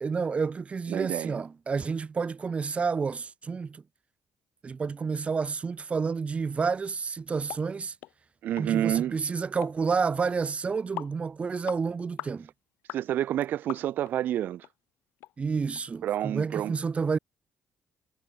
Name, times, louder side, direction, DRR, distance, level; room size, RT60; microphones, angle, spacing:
voice 1, 0.0-3.8 4.6-7.9 8.6-12.5 15.4-17.2, right 5 dB, 35° right, 0.8 m, -30 dB
voice 2, 0.9-1.4 8.4-9.2 12.9-14.7 16.0-16.7, right 12 dB, 65° right, 0.4 m, -29 dB
sound 1, 7.5-7.6 8.0-8.1 8.6-8.7 8.9-9.1 9.6-9.8 10.3-10.4 11.0-11.2 11.7-11.8 12.2-12.4 12.9-13.0 13.7-14.1 14.6-14.7 15.2-15.3 15.8-15.9, left 17 dB, 80° left, 0.8 m, -40 dB
hypercardioid pair, 55°, 3 cm